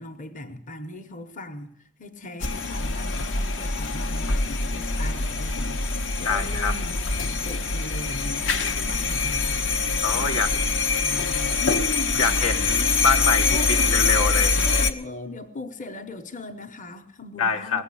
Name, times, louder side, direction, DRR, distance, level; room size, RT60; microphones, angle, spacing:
voice 1, 0.0-1.7 2.0-9.8 10.1-10.6 11.0-12.4 12.9-13.1 13.5-14.0 14.6-17.8, left 1 dB, 40° left, 1.0 m, -38 dB
sound 1, 2.4-14.9, left 4 dB, 65° left, 1.0 m, -24 dB
voice 2, 6.2-6.7 10.0-10.5 12.1-14.6 17.4-17.8, left 4 dB, 85° left, 1.2 m, -25 dB
18.5 x 7.4 x 9.9 m
head